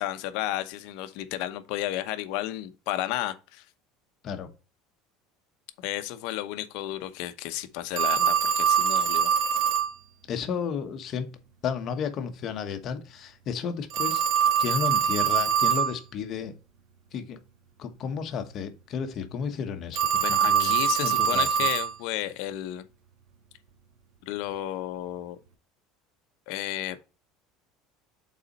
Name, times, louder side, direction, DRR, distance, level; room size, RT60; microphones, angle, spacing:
voice 1, 0.0-3.6 5.8-9.3 20.2-22.8 24.2-25.4 26.5-27.0, left 14 dB, 65° left, 0.8 m, -32 dB
Telephone, 8.0-9.9 13.9-15.9 19.9-21.9, right 8 dB, 65° right, 1.3 m, -23 dB
voice 2, 10.3-11.4 11.6-14.3 14.6-16.5 17.1-17.4 17.8-20.7 21.0-21.7, left 6 dB, 40° left, 1.1 m, -33 dB
6.7 x 4.2 x 4.1 m
cardioid pair, 155°, 0 cm